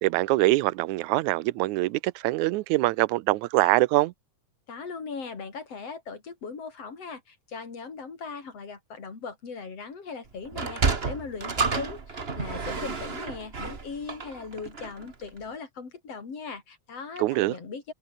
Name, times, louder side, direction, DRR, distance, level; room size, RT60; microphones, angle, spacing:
voice 1, 0.0-4.1 17.2-17.5, right 19 dB, 80° right, 2.0 m, -24 dB
voice 2, 4.7-17.9, left 5 dB, 50° left, 5.3 m, -39 dB
Sliding door, 10.5-15.1, right 4 dB, 25° right, 1.3 m, -30 dB
omnidirectional pair, 3.5 m